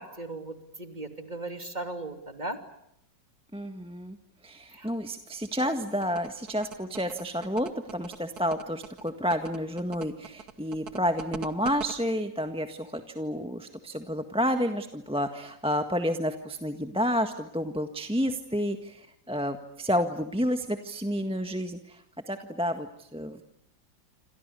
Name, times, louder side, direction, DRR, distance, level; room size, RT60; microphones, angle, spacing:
voice 1, 0.0-2.6 4.7-4.9, right 2 dB, 25° right, 6 dB, 3.0 m, -37 dB
voice 2, 3.5-4.2 4.4-22.0 22.3-23.4, equal, 5° right, 6 dB, 1.5 m, -30 dB
sound 1, 6.0-11.9, right 7 dB, 60° right, 1.9 m, -41 dB
28.5 x 26.5 x 6.9 m, 0.74 s
omnidirectional pair, 1.9 m